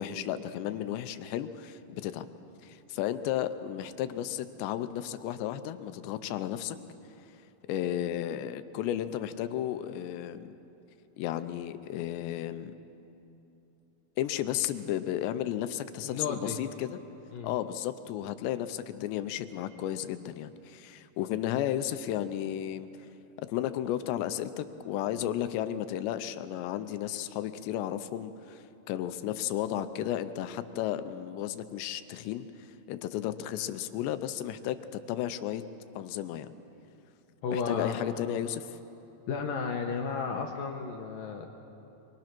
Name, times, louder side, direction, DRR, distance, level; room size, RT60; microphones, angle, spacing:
voice 1, 0.0-2.3 2.6-6.8 7.7-10.6 11.2-12.7 14.2-17.0 17.4-22.9 23.4-35.6 36.0-36.5 37.5-38.8, left 11 dB, 85° left, 11 dB, 2.9 m, -33 dB
voice 2, 16.1-16.5 17.3-17.5 37.4-38.0 38.3-38.4 39.3-41.5, left 5 dB, 65° left, 3 dB, 2.4 m, -33 dB
26.0 x 23.0 x 6.0 m, 2.9 s
omnidirectional pair, 4.9 m